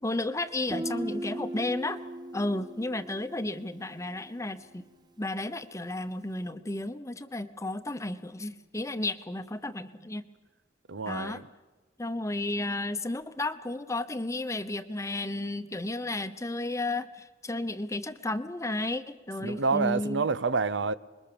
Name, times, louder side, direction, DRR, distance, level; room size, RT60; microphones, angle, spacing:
voice 1, 0.0-2.0 2.3-4.8 5.2-10.3 11.1-11.4 12.0-20.3, left 2 dB, 15° left, 0.9 m, -33 dB
Guitar, 0.7-4.3, right 1 dB, 20° right, 0.6 m, -38 dB
voice 2, 10.9-11.4 19.4-20.9, right 4 dB, 80° right, 0.7 m, -28 dB
26.5 x 22.0 x 7.0 m
head